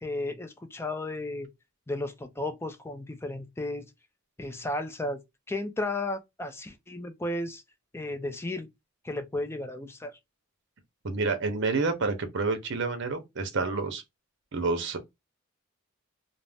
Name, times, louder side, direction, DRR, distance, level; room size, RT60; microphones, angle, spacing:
voice 1, 0.0-1.5 1.9-3.9 4.4-5.2 5.5-7.6 7.9-8.7 9.0-10.2, left 2 dB, 10° left, 0.4 m, -34 dB
voice 2, 11.0-14.0 14.5-15.0, right 3 dB, 55° right, 0.7 m, -28 dB
2.6 x 2.0 x 3.3 m
head